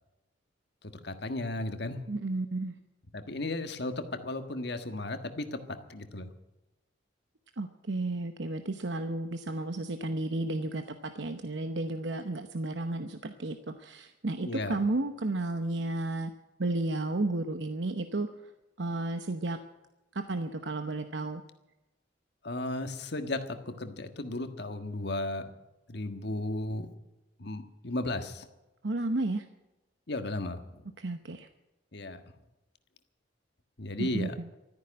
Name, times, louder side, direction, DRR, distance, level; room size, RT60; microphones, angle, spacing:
voice 1, 0.8-2.0 3.1-6.3 14.4-14.7 22.4-25.5 25.9-26.9 27.4-28.5 30.1-30.9 31.9-32.2 33.8-34.3, left 2 dB, 60° left, 8 dB, 1.6 m, -35 dB
voice 2, 2.1-2.7 7.6-16.3 16.6-18.3 18.8-19.6 20.1-21.4 28.8-29.5 31.0-31.5 34.0-34.5, right 2 dB, 65° right, 7 dB, 0.9 m, -32 dB
13.5 x 10.0 x 9.7 m, 0.98 s
head